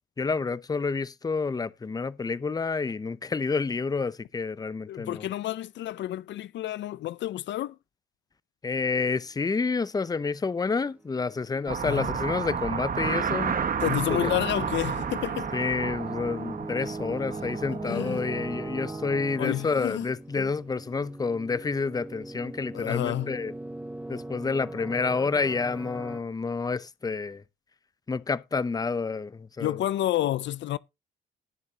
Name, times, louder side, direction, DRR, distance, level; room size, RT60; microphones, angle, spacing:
voice 1, 0.2-5.3 8.6-13.5 14.1-14.3 15.5-23.5 24.1-27.4 28.1-29.8, left 4 dB, 20° left, 0.6 m, -29 dB
voice 2, 4.9-7.8 11.9-12.1 13.8-15.5 17.8-18.3 19.4-20.5 22.7-23.3 29.6-30.8, left 13 dB, 65° left, 0.5 m, -30 dB
sound 1, 11.3-26.2, right 2 dB, 5° right, 1.4 m, -40 dB
sound 2, 11.7-19.2, right 6 dB, 45° right, 1.6 m, -32 dB
18.5 x 7.1 x 2.8 m
cardioid pair, 90°, 20 cm